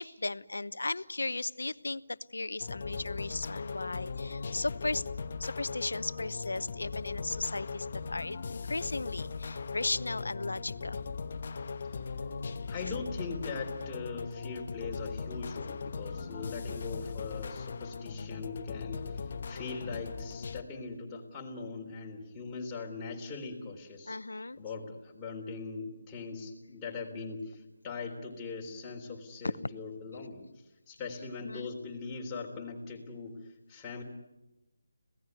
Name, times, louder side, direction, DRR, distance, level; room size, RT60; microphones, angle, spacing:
voice 1, 0.0-5.0 5.4-11.0 24.1-24.6 31.4-31.7, left 2 dB, 85° left, 16 dB, 0.9 m, -36 dB
sound 1, 2.6-20.6, left 5 dB, 40° left, 1.1 m, -39 dB
voice 2, 11.8-12.2 12.7-24.2 24.6-30.4 30.9-34.0, left 4 dB, 10° left, -1 dB, 3.5 m, -41 dB
26.5 x 17.5 x 9.6 m, 1.0 s
figure-of-eight pair, 165°, 0 cm